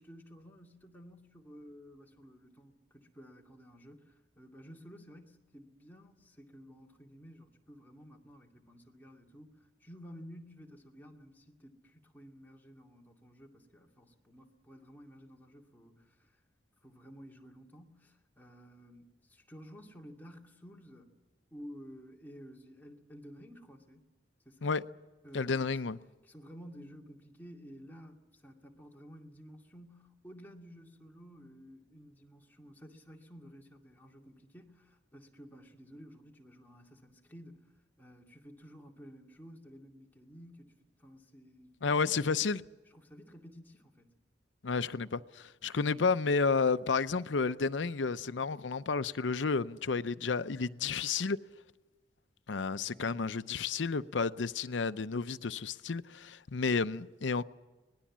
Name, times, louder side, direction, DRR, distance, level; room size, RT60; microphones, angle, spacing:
voice 1, 0.0-16.4 16.8-21.1 21.5-24.1 24.4-24.9 25.2-25.6 26.2-37.7 38.0-42.4 42.9-44.2, equal, 10° left, 2.4 m, -53 dB
voice 2, 25.3-26.0 41.8-42.6 44.6-51.4 52.5-57.4, left 4 dB, 85° left, 0.7 m, -31 dB
24.5 x 19.5 x 7.4 m
head